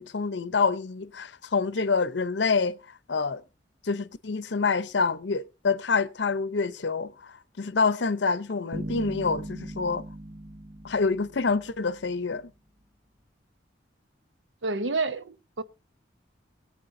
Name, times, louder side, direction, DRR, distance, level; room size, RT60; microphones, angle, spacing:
voice 1, 0.0-2.8 3.1-3.4 3.8-10.0 10.8-12.5, left 4 dB, 70° left, 0.7 m, -27 dB
sound 1, 8.7-12.1, right 1 dB, 40° right, 1.0 m, -39 dB
voice 2, 14.6-15.6, right 3 dB, 85° right, 0.8 m, -29 dB
24.0 x 8.5 x 2.6 m
head